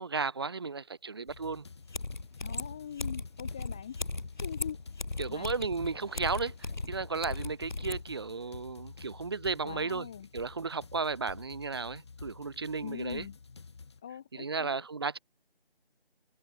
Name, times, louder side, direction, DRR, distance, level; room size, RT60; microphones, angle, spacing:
voice 1, 0.0-1.6 5.2-6.5 6.8-10.1 10.3-13.3 14.3-15.2, right 4 dB, 25° right, 4.2 m, -34 dB
sound 1, 1.3-14.0, left 4 dB, 25° left, 7.8 m, -50 dB
sound 2, 1.7-1.8 1.9-8.0, left 3 dB, 45° left, 3.6 m, -37 dB
voice 2, 2.4-4.0 4.4-4.8 5.3-5.5 9.6-10.3 12.8-13.4 14.0-14.8, left 9 dB, 5° left, 1.8 m, -42 dB
figure-of-eight pair, 175°, 31 cm